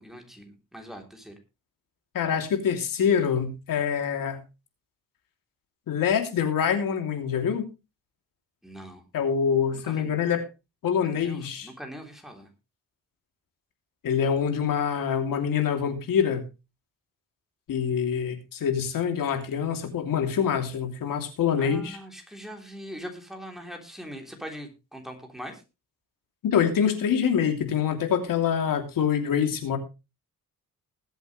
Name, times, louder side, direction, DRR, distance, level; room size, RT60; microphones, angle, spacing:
voice 1, 0.0-1.3 8.6-9.0 9.8-10.1 11.0-12.5 21.6-25.6, equal, ahead, 2 dB, 3.4 m, -42 dB
voice 2, 2.1-4.4 5.9-7.7 9.1-10.4 10.8-11.7 14.0-16.4 17.7-22.0 26.4-29.8, left 7 dB, 85° left, 5 dB, 3.0 m, -25 dB
20.5 x 8.2 x 3.2 m, 0.29 s
cardioid pair, 130°, 33 cm